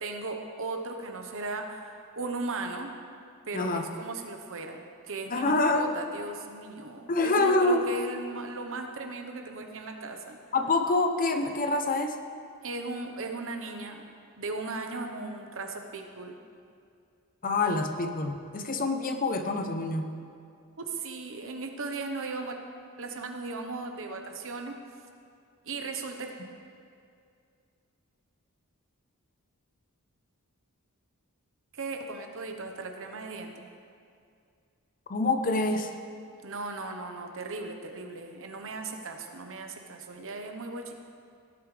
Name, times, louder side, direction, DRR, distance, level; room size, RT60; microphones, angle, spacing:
voice 1, 0.0-2.9 3.5-10.4 12.6-14.1 14.4-16.4 20.8-22.5 23.0-24.8 25.6-26.3 31.7-33.7 36.4-40.9, right 3 dB, 65° right, 4 dB, 1.1 m, -37 dB
voice 2, 3.5-3.8 5.3-5.9 7.1-7.8 10.5-12.2 17.4-20.1 35.1-35.9, left 2 dB, 40° left, 6 dB, 0.7 m, -26 dB
18.0 x 8.5 x 3.4 m, 2.4 s
head